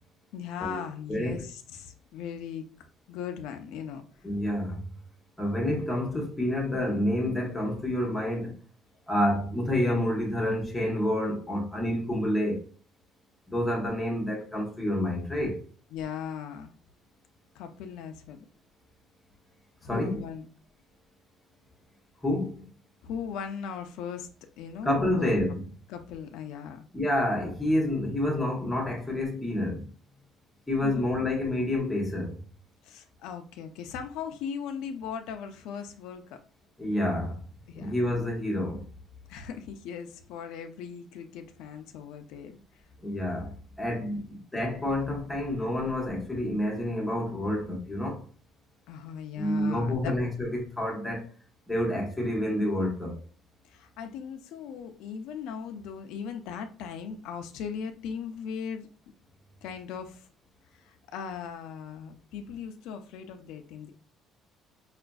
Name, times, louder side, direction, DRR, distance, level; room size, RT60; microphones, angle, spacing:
voice 1, 0.3-4.0 15.9-16.7 17.5-18.5 19.8-20.5 23.0-24.3 24.6-25.4 25.9-26.8 30.8-31.1 32.8-36.4 37.7-37.9 39.3-42.6 43.9-44.2 48.9-50.1 53.6-58.9 59.6-60.3 60.7-63.9, left 7 dB, 90° left, 0.5 m, -38 dB
voice 2, 1.1-1.4 4.2-4.9 5.4-8.5 9.1-12.6 13.5-15.6 19.9-20.2 22.2-22.7 24.8-25.6 26.9-29.9 30.7-32.4 36.8-37.4 37.7-38.9 43.0-48.2 49.4-51.3 51.7-53.2, left 1 dB, 5° left, 0.9 m, -28 dB
4.9 x 2.5 x 2.3 m
cardioid pair, 180°, 0 cm